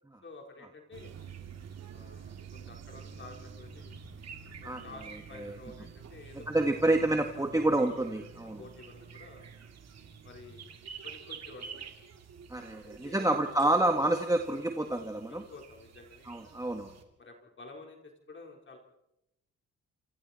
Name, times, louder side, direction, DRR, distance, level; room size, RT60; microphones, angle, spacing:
voice 1, 0.2-1.1 1.9-4.0 4.6-6.8 8.6-9.5 10.2-11.9 12.8-13.8 14.8-16.4 17.2-18.8, left 3 dB, 40° left, 1 dB, 4.5 m, -51 dB
sound 1, 0.9-17.0, right 6 dB, 60° right, 3.0 m, -48 dB
voice 2, 6.5-8.6 12.5-15.4 16.3-16.9, right 1 dB, 10° right, 4 dB, 1.8 m, -28 dB
28.0 x 26.0 x 4.4 m, 0.88 s
cardioid pair, 90°, 30 cm